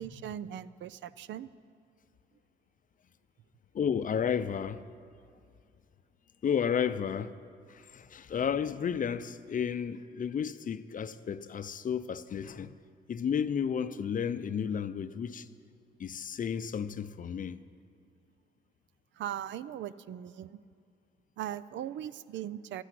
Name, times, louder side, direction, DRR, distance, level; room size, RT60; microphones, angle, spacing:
voice 1, 0.0-1.5 19.1-20.6 21.4-22.8, right 11 dB, 70° right, 0.5 m, -39 dB
voice 2, 3.7-4.8 6.4-7.4 7.7-12.8 13.1-15.5 16.0-17.6, left 7 dB, 40° left, 0.6 m, -32 dB
12.5 x 9.9 x 9.3 m
cardioid pair, 90°, 20 cm